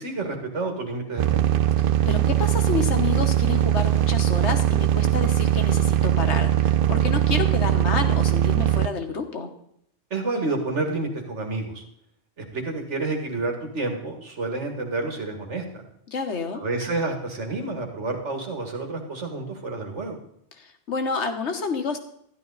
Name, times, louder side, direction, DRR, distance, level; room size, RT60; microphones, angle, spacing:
voice 1, 0.0-1.4 10.1-11.8 12.4-15.8 16.5-20.2, right 3 dB, 75° right, 3 dB, 2.3 m, -29 dB
sound 1, 1.2-8.9, right 11 dB, 60° right, 0.6 m, -21 dB
voice 2, 1.8-9.5 16.1-16.6 20.5-22.0, left 4 dB, 70° left, 6 dB, 1.6 m, -29 dB
13.0 x 11.0 x 4.0 m, 0.72 s
omnidirectional pair, 1.2 m